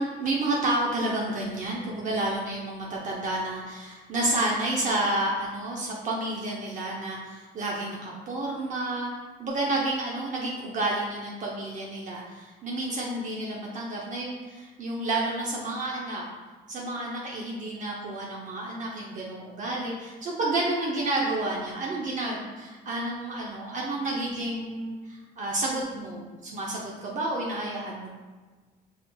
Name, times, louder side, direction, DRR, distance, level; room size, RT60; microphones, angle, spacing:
voice 1, 0.0-9.1 9.4-16.2 16.7-28.1, right 2 dB, 45° right, -3 dB, 0.7 m, -30 dB
5.4 x 4.0 x 2.3 m, 1.3 s
cardioid pair, 110°, 17 cm